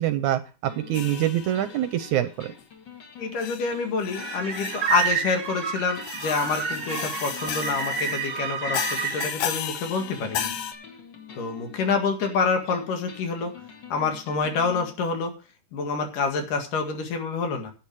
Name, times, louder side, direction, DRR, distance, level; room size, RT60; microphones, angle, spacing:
voice 1, 0.0-2.5, right 12 dB, 75° right, 11 dB, 1.9 m, -25 dB
sound 1, 0.7-14.9, left 6 dB, 40° left, 2.0 m, -46 dB
sound 2, 0.9-1.8 2.6-2.7 3.4-3.7 4.0-5.3 6.0-8.3 8.7-10.7, left 9 dB, 90° left, 3.0 m, -34 dB
voice 2, 3.2-10.5 11.4-13.6 13.9-15.4 15.7-17.7, left 4 dB, 70° left, 5 dB, 3.5 m, -27 dB
sound 3, 4.1-9.3, right 6 dB, 35° right, 1.2 m, -30 dB
10.5 x 9.5 x 4.7 m, 0.35 s
omnidirectional pair, 3.9 m